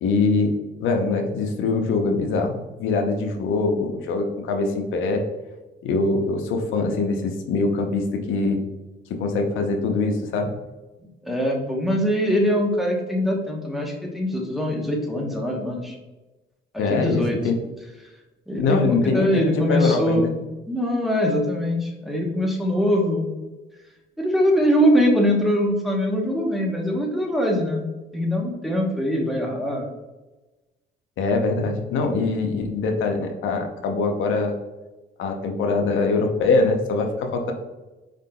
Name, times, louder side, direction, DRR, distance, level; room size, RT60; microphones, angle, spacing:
voice 1, 0.0-0.5 0.8-5.2 5.8-8.6 9.2-10.5 16.8-17.6 18.6-20.3 31.2-34.5 35.2-37.5, left 3 dB, 80° left, 3 dB, 0.6 m, -23 dB
voice 2, 11.2-16.0 16.7-17.4 18.5-23.3 24.2-27.8 28.1-29.9, equal, ahead, -1 dB, 0.9 m, -22 dB
4.4 x 3.7 x 2.2 m, 1.1 s
cardioid pair, 90°, 20 cm